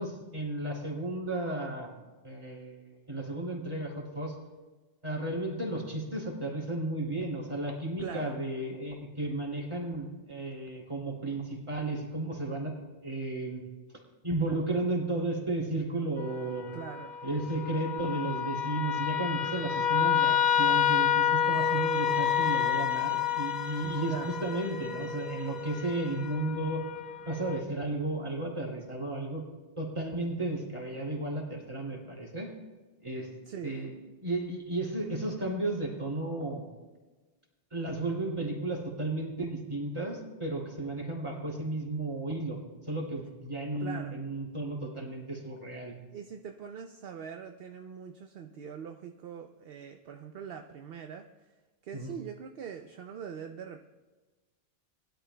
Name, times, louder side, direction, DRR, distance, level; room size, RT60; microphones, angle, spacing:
voice 1, 0.0-1.9 2.2-4.3 5.0-12.7 13.0-13.6 14.2-16.7 17.2-26.8 27.2-29.4 29.8-32.5 33.0-33.3 33.6-33.9 34.2-36.6 37.7-45.9 51.9-52.1, right 2 dB, 30° right, -2 dB, 2.7 m, -33 dB
voice 2, 8.0-8.4 16.7-17.2 24.0-24.4 33.5-33.9 43.8-44.1 46.1-51.3 51.8-53.8, right 7 dB, 70° right, 5 dB, 0.8 m, -42 dB
sound 1, 16.2-27.6, left 9 dB, 60° left, 0.8 m, -29 dB
sound 2, 21.4-26.4, left 5 dB, 85° left, 1.4 m, -44 dB
20.5 x 11.5 x 2.2 m, 1.3 s
omnidirectional pair, 1.0 m